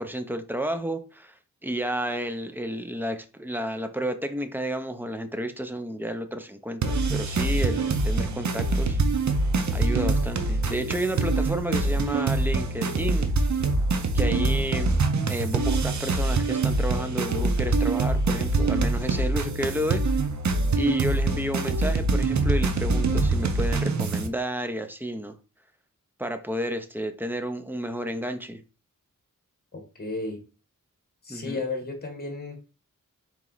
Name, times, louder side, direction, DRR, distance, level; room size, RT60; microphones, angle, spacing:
voice 1, 0.0-1.4 1.6-9.0 9.7-13.3 14.1-20.0 20.7-25.3 26.2-28.6 31.3-31.6, equal, 5° right, 0.5 m, -31 dB
sound 1, 6.8-24.3, right 3 dB, 55° right, 0.7 m, -24 dB
voice 2, 29.7-30.4 31.2-32.7, left 3 dB, 30° left, 1.3 m, -33 dB
4.2 x 3.0 x 3.9 m
wide cardioid pair, 90°, 33 cm